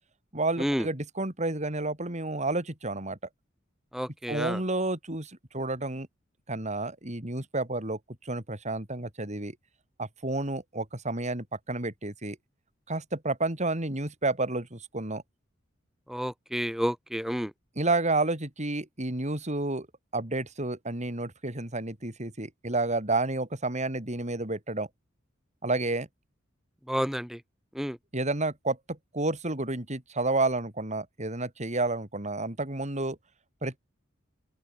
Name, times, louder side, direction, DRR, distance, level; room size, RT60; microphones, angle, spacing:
voice 1, 0.3-3.2 4.3-6.1 6.5-9.6 10.0-12.4 12.9-15.2 17.8-19.9 20.1-24.9 25.6-26.1 28.1-33.2 33.6-33.8, right 2 dB, 35° right, 3.8 m, -30 dB
voice 2, 3.9-4.6 16.1-17.5 26.9-27.4 27.7-28.0, equal, ahead, 3.6 m, -30 dB
open air
head